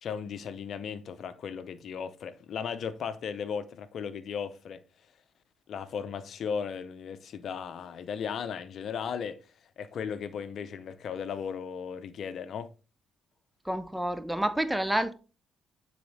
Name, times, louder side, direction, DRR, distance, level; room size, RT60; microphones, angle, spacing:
voice 1, 0.0-4.8 5.7-12.7, left 7 dB, 60° left, 0.7 m, -36 dB
voice 2, 13.6-15.1, right 1 dB, 5° right, 0.6 m, -29 dB
9.2 x 4.2 x 3.4 m
hypercardioid pair, 50°, 0 cm